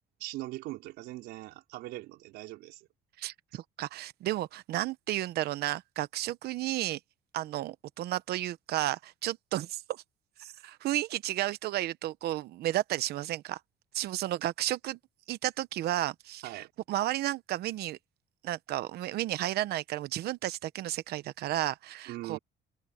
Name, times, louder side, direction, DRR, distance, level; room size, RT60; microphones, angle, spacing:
voice 1, 0.2-2.9 3.5-3.6 16.4-16.7 22.1-22.4, right 18 dB, 90° right, 4.7 m, -41 dB
voice 2, 3.2-7.0 7.3-10.0 10.4-13.6 13.9-15.0 15.3-18.0 18.4-22.4, right 14 dB, 70° right, 1.0 m, -33 dB
open air
cardioid pair, 110°, 17 cm